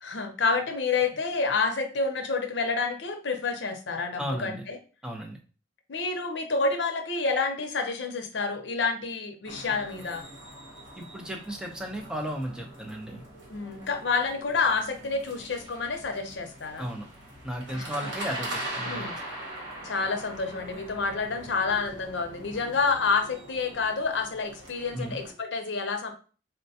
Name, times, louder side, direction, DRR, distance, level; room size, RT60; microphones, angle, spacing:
voice 1, 0.0-4.8 5.9-10.2 13.5-16.9 17.7-18.1 18.8-19.2 19.8-26.1, left 4 dB, 70° left, 5 dB, 0.6 m, -29 dB
voice 2, 4.2-4.6 5.0-5.4 11.0-13.2 16.8-17.1 17.4-19.1 24.9-25.2, equal, 5° right, 1 dB, 0.5 m, -34 dB
sound 1, 9.4-25.3, right 1 dB, 75° right, 1.3 m, -42 dB
4.3 x 2.2 x 2.7 m, 0.37 s
head